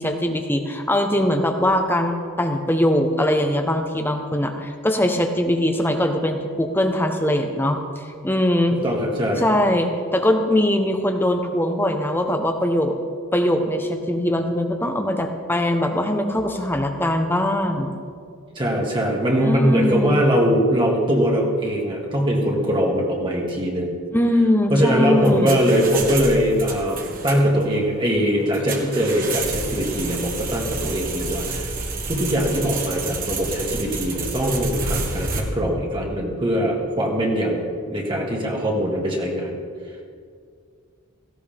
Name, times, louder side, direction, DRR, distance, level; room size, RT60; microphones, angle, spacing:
voice 1, 0.0-7.8 8.2-8.8 9.4-13.0 13.3-17.9 19.4-20.1 24.1-25.6, left 1 dB, 10° left, 5 dB, 1.0 m, -21 dB
voice 2, 8.8-9.4 18.6-24.0 24.7-31.7 32.1-37.6 37.9-39.5, equal, 25° right, -2 dB, 2.1 m, -21 dB
sound 1, 25.0-35.4, right 3 dB, 40° right, 1.6 m, -30 dB
17.5 x 16.5 x 3.6 m, 2.2 s
head